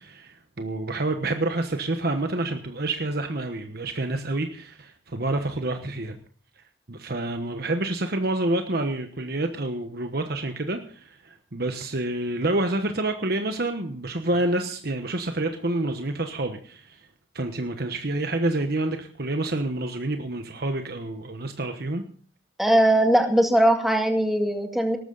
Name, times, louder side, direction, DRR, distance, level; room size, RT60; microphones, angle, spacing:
voice 1, 0.0-6.2 6.6-17.1 17.3-22.0, right 2 dB, 55° right, 6 dB, 1.2 m, -28 dB
voice 2, 22.6-25.0, right 1 dB, ahead, 4 dB, 2.1 m, -20 dB
19.0 x 13.0 x 4.1 m, 0.43 s
head